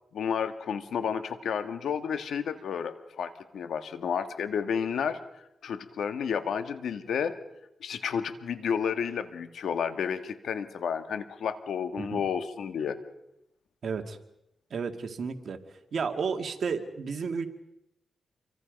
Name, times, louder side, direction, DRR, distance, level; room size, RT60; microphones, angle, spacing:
voice 1, 0.1-5.2 5.6-7.3 7.8-13.0, left 7 dB, 85° left, 9 dB, 1.7 m, -31 dB
voice 2, 13.8-14.2 14.7-15.6 15.9-17.5, right 5 dB, 65° right, 6 dB, 2.2 m, -32 dB
28.0 x 24.0 x 5.3 m, 0.82 s
cardioid pair, 70°, 0 cm